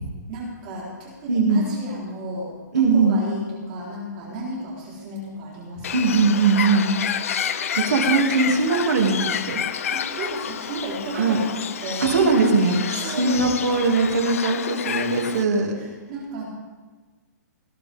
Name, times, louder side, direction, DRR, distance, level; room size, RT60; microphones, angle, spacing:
voice 1, 0.3-5.9 9.9-12.3 13.0-13.5 15.8-16.4, right 1 dB, 25° right, -4 dB, 4.0 m, -33 dB
voice 2, 1.3-1.7 2.7-3.2 5.9-6.9 7.7-9.6 11.1-11.4 12.0-15.7, right 4 dB, 60° right, 1 dB, 2.7 m, -20 dB
Bird, 5.8-15.4, left 8 dB, 50° left, 0.7 m, -29 dB
18.5 x 11.5 x 3.6 m, 1.3 s
hypercardioid pair, 175°, 10 cm